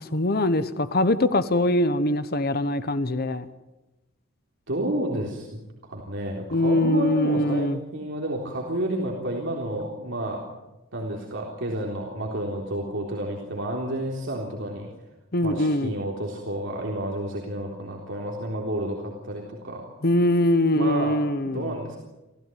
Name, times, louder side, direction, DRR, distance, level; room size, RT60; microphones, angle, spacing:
voice 1, 0.0-3.5 6.5-7.8 15.3-15.9 20.0-21.7, left 1 dB, 50° left, 13 dB, 1.1 m, -22 dB
voice 2, 4.7-10.4 10.9-14.9 15.4-19.9 20.7-21.2 21.4-22.0, right 1 dB, 60° right, -1 dB, 3.7 m, -30 dB
27.0 x 15.5 x 9.3 m, 1.0 s
head